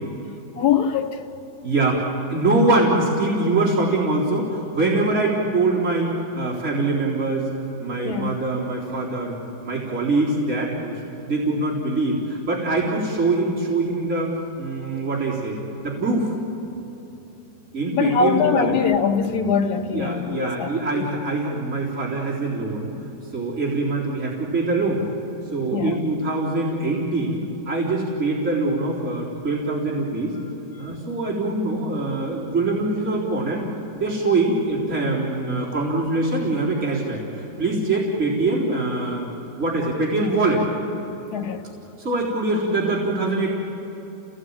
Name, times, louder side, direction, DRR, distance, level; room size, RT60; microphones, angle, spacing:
voice 1, 0.5-1.2 8.0-8.3 17.9-21.1 25.7-26.0 30.8-30.9 41.3-41.6, left 6 dB, 65° left, 1.7 m, -22 dB
voice 2, 1.6-7.5 7.8-9.3 9.6-15.6 15.8-16.3 17.7-18.8 19.9-22.9 23.3-25.0 25.5-30.4 30.8-33.6 33.9-39.2 39.6-40.6 42.0-43.5, right 2 dB, 40° right, 4.3 m, -23 dB
28.5 x 18.5 x 8.9 m
omnidirectional pair, 1.9 m